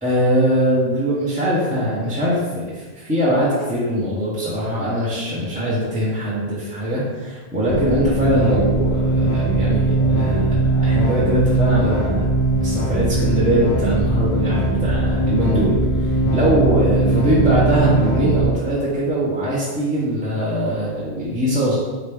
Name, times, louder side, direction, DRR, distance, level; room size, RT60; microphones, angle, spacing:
voice 1, 0.0-12.3 12.6-21.8, equal, 10° right, -9 dB, 0.7 m, -21 dB
sound 1, 7.7-18.5, right 2 dB, 30° left, 0.9 m, -20 dB
4.3 x 3.0 x 3.4 m, 1.4 s
omnidirectional pair, 1.2 m